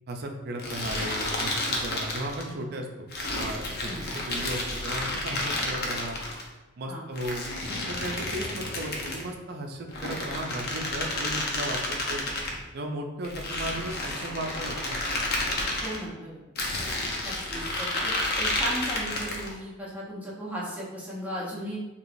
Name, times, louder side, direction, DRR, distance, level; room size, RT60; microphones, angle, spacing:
voice 1, 0.1-3.1 3.3-6.2 6.8-7.5 7.9-12.2 12.7-15.0, right 1 dB, 50° right, 3 dB, 0.5 m, -36 dB
sound 1, 0.6-2.5 3.1-6.4 7.2-9.3 9.9-12.6 13.2-16.0 16.6-19.5, left 2 dB, 50° left, 0.7 m, -31 dB
voice 2, 15.8-16.4 17.2-21.8, equal, 10° right, -7 dB, 0.9 m, -36 dB
4.7 x 2.9 x 2.6 m, 1.1 s
head